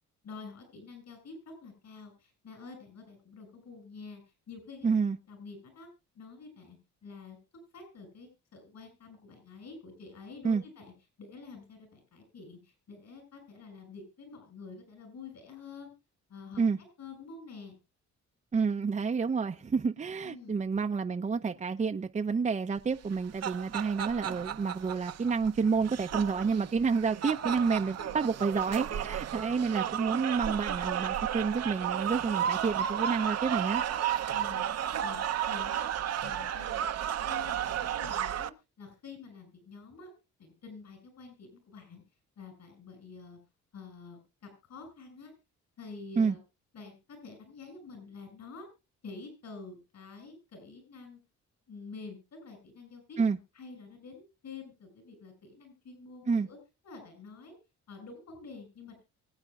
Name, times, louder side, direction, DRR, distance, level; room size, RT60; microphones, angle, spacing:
voice 1, 0.2-4.9 5.3-5.9 6.1-7.4 7.7-10.9 11.2-15.9 16.3-16.6 17.0-17.8 20.2-20.6 28.0-28.2 34.3-34.7 35.0-35.2 35.5-35.9 36.2-38.5 38.8-40.1 40.4-42.0 42.4-43.4 43.7-45.3 45.8-46.4 46.7-48.7 49.0-51.2 51.7-53.2 53.5-56.6 56.8-57.6 57.9-59.0, left 4 dB, 60° left, 6.6 m, -48 dB
voice 2, 4.8-5.2 10.4-10.6 16.6-16.8 18.5-33.8 46.2-46.4 53.2-53.4 56.3-56.5, right 5 dB, 25° right, 0.6 m, -29 dB
sound 1, 23.0-38.5, right 10 dB, 55° right, 0.8 m, -33 dB
24.0 x 8.8 x 2.4 m
cardioid pair, 90°, 30 cm